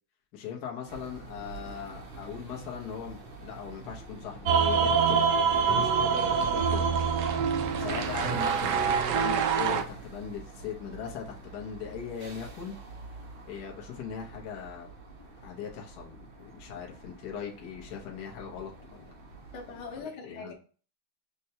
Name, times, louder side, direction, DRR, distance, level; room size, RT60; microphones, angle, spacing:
voice 1, 0.3-5.3 5.5-6.9 7.8-12.8 13.5-14.9 15.4-19.0 20.0-20.5, left 7 dB, 60° left, 1.3 m, -39 dB
sound 1, 0.9-20.0, right 3 dB, 50° right, 0.7 m, -45 dB
sound 2, 4.5-9.8, right 6 dB, 70° right, 1.1 m, -25 dB
voice 2, 7.8-8.1 19.5-20.5, left 4 dB, 80° left, 1.8 m, -41 dB
6.6 x 2.2 x 2.8 m
omnidirectional pair, 2.2 m